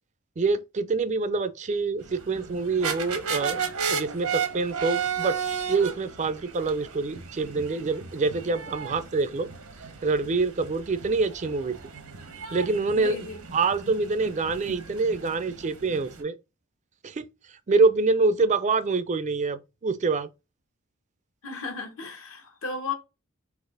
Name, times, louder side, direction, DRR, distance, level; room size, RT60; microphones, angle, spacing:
voice 1, 0.4-3.6 3.9-5.4 5.7-9.5 10.0-11.8 12.5-13.3 13.5-16.4 17.0-17.3 17.7-20.3, right 3 dB, 35° right, 0.4 m, -26 dB
sound 1, 2.0-16.2, right 6 dB, 85° right, 1.0 m, -34 dB
voice 2, 12.9-13.4 21.4-22.9, left 4 dB, 65° left, 1.0 m, -34 dB
4.0 x 2.8 x 3.9 m
head